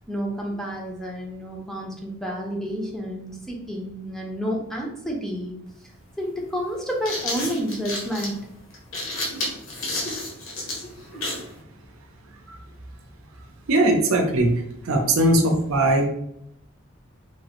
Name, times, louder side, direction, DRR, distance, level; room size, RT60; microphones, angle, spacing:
voice 1, 0.1-5.6 6.2-8.4, equal, ahead, -1 dB, 0.4 m, -30 dB
sound 1, 5.7-5.8 6.7-11.5, left 1 dB, 70° left, 0.9 m, -31 dB
voice 2, 13.7-14.6 14.9-16.1, right 1 dB, 85° right, 4 dB, 0.5 m, -19 dB
3.1 x 2.1 x 2.8 m, 0.74 s
head